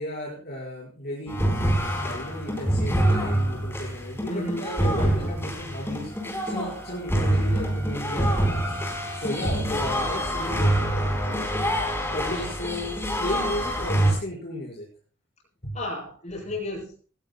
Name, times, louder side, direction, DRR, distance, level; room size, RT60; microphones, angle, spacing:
voice 1, 0.0-1.5 2.0-6.1 6.4-8.7 9.1-11.4 12.1-14.9 15.6-15.8, left 1 dB, 55° left, -5 dB, 5.2 m, -34 dB
sound 1, 1.3-14.1, right 1 dB, 15° left, 4.3 m, -26 dB
voice 2, 4.3-5.3 7.0-7.3 9.6-9.8 12.1-12.5 15.7-17.1, left 1 dB, 35° left, -1 dB, 7.2 m, -34 dB
20.0 x 17.5 x 2.3 m, 0.40 s
head